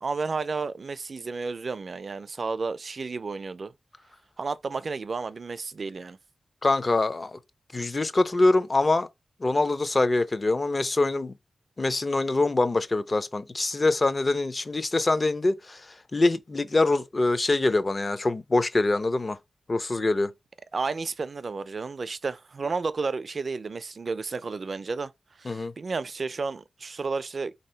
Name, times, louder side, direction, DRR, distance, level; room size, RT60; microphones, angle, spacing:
voice 1, 0.0-3.7 4.4-6.2 20.7-25.1 25.4-27.5, right 4 dB, 50° right, 0.3 m, -32 dB
voice 2, 6.6-7.4 7.7-9.1 9.4-11.3 11.8-19.4 19.7-20.3 25.4-25.7, left 2 dB, 35° left, 0.4 m, -24 dB
3.4 x 2.8 x 4.3 m
wide cardioid pair, 105°, 0 cm